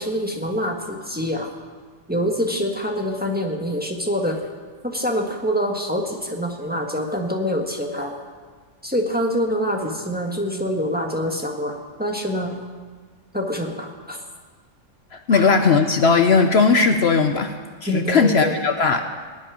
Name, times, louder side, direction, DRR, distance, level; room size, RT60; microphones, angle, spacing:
voice 1, 0.0-1.5 2.1-4.5 4.8-8.2 8.8-12.6 13.3-14.2 15.3-15.5 17.9-18.6, equal, 5° right, 1 dB, 1.5 m, -25 dB
voice 2, 15.1-17.5 17.8-19.0, left 4 dB, 60° left, 6 dB, 1.0 m, -17 dB
19.0 x 6.5 x 10.0 m, 1.5 s
omnidirectional pair, 1.3 m